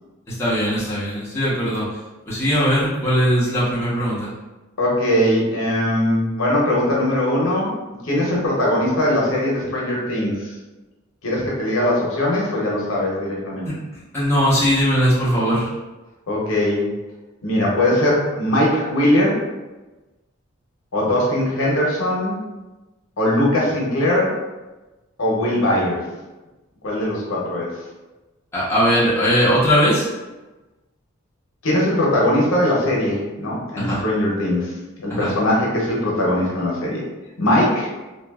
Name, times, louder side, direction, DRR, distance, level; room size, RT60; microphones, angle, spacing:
voice 1, 0.3-1.9 2.3-4.3 13.6-13.7 14.1-15.7 28.5-30.1 33.8-34.0 35.1-35.3, equal, 10° left, -9 dB, 0.8 m, -19 dB
voice 2, 4.8-7.7 8.0-10.5 11.2-13.7 16.3-16.9 17.4-19.4 20.9-22.4 23.2-24.3 25.2-26.0 26.8-27.7 31.6-34.7 35.0-37.0 37.4-37.9, left 1 dB, 75° left, -4 dB, 0.8 m, -20 dB
2.9 x 2.5 x 2.3 m, 1.1 s
head